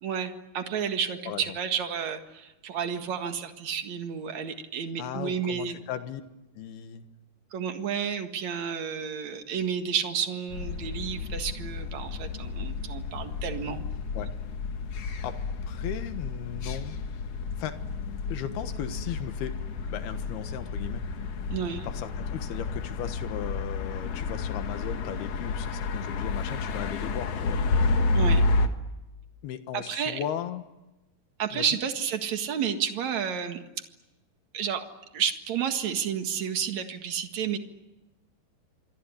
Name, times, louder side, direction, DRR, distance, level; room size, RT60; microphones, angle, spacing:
voice 1, 0.0-5.8 7.5-13.8 21.5-21.9 28.1-28.4 29.7-30.2 31.4-33.6 34.5-34.8 35.1-37.6, right 7 dB, 50° right, 6 dB, 2.6 m, -31 dB
voice 2, 5.0-6.2 6.5-7.1 14.1-14.3 15.2-15.4 15.7-17.0 17.6-17.8 18.3-19.6 19.9-21.0 21.8-27.6 29.4-30.7 31.5-31.6, left 9 dB, 75° left, 9 dB, 3.4 m, -36 dB
sound 1, 10.5-28.7, left 3 dB, 55° left, 1.9 m, -30 dB
26.5 x 22.5 x 9.9 m, 1.0 s
omnidirectional pair, 4.7 m